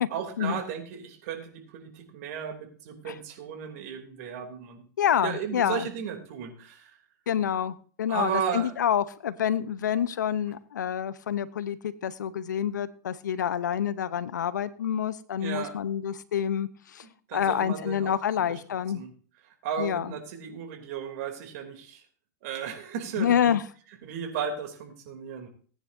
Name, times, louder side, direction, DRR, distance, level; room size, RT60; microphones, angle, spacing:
voice 1, 0.1-4.9 5.2-7.0 8.1-8.7 15.4-15.7 17.0-18.1 18.5-18.6 18.9-19.1 19.4-22.0 22.4-23.5 24.0-25.5, right 7 dB, 60° right, 4 dB, 3.0 m, -35 dB
voice 2, 5.0-5.9 7.3-17.0 17.3-19.0 19.8-20.1 23.2-23.6, left 9 dB, 85° left, 16 dB, 0.8 m, -27 dB
18.5 x 9.8 x 2.7 m, 0.43 s
hypercardioid pair, 115°, 10 cm